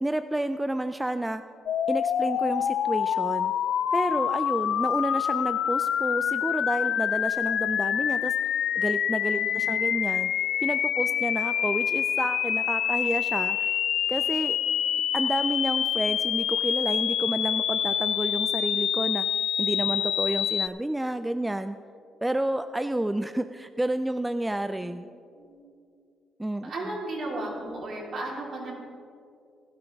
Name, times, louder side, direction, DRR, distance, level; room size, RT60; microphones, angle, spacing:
voice 1, 0.0-1.4 1.9-3.5 3.9-8.3 8.7-10.3 10.6-13.7 14.1-14.6 15.1-19.3 19.6-21.8 22.2-25.1 26.4-26.7, right 1 dB, 10° right, 10 dB, 0.3 m, -30 dB
sound 1, 1.7-20.7, left 9 dB, 70° left, 0.4 m, -26 dB
voice 2, 9.3-9.7 24.8-24.9 25.3-25.7 26.6-28.7, right 2 dB, 60° right, -3 dB, 3.6 m, -35 dB
15.5 x 12.0 x 3.5 m, 2.4 s
cardioid pair, 90°, 0 cm